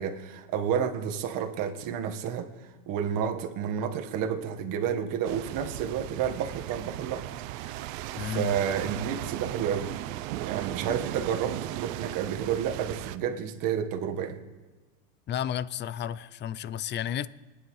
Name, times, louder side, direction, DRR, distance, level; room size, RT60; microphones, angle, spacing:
voice 1, 0.0-2.5 2.9-7.3 8.3-9.9 10.4-14.4, right 8 dB, 55° right, 1.5 m, -30 dB
sound 1, 5.2-13.2, right 15 dB, 75° right, 0.7 m, -36 dB
voice 2, 8.2-8.5 15.3-17.3, left 10 dB, 30° left, 0.4 m, -32 dB
20.5 x 10.0 x 3.2 m
supercardioid pair, 105°, 39 cm